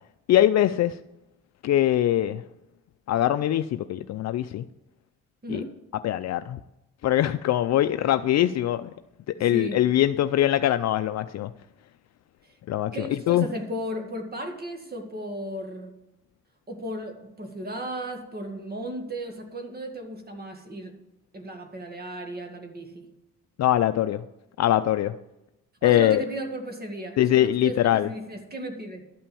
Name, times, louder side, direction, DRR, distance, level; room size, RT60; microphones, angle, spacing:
voice 1, 0.3-1.0 1.6-2.4 3.1-4.7 5.5-5.6 6.0-6.6 7.0-8.9 9.4-11.5 12.7-13.5 23.6-24.2 24.6-25.1 25.8-26.2 27.2-28.1, left 12 dB, 60° left, 10 dB, 0.5 m, -22 dB
voice 2, 5.4-5.7 9.4-9.8 12.4-12.6 12.9-15.9 16.7-21.0 21.3-23.1 25.8-29.0, equal, 30° right, 4 dB, 1.9 m, -35 dB
12.0 x 5.7 x 7.0 m, 0.91 s
cardioid pair, 90°, 30 cm